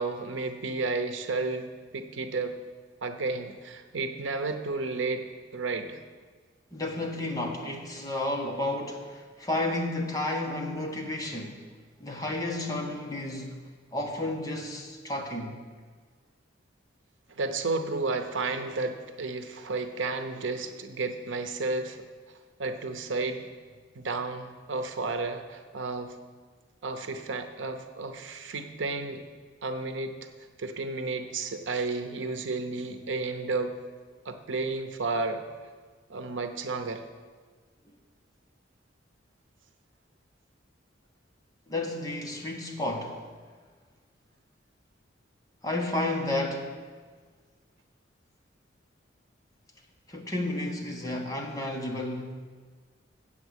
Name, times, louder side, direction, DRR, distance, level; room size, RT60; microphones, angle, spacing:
voice 1, 0.0-2.6 3.0-6.0 17.3-22.0 22.6-23.5 23.9-26.2 26.8-29.2 29.6-30.2 30.6-33.8 34.2-35.4 36.1-37.0, right 3 dB, 75° right, 7 dB, 0.8 m, -32 dB
voice 2, 6.7-11.6 12.0-13.6 13.9-15.6 41.7-43.2 45.6-46.7 50.1-52.2, left 1 dB, 20° left, 1 dB, 1.2 m, -32 dB
7.9 x 7.2 x 8.1 m, 1.5 s
head